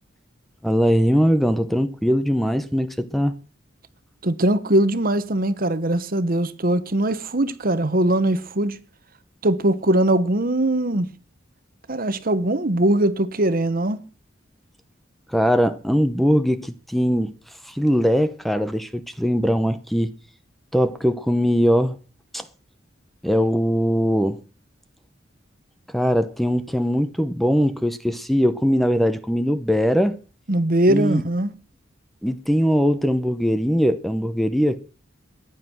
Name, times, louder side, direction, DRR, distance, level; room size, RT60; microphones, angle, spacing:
voice 1, 0.6-3.3 15.3-17.3 17.7-20.1 20.7-22.0 22.3-22.4 23.2-24.4 25.9-30.2 30.9-31.2 32.2-34.8, equal, ahead, 0.8 m, -21 dB
voice 2, 4.2-8.8 9.4-11.1 11.9-14.0 30.5-31.5, right 1 dB, 50° right, 1.1 m, -21 dB
14.5 x 9.9 x 6.2 m
head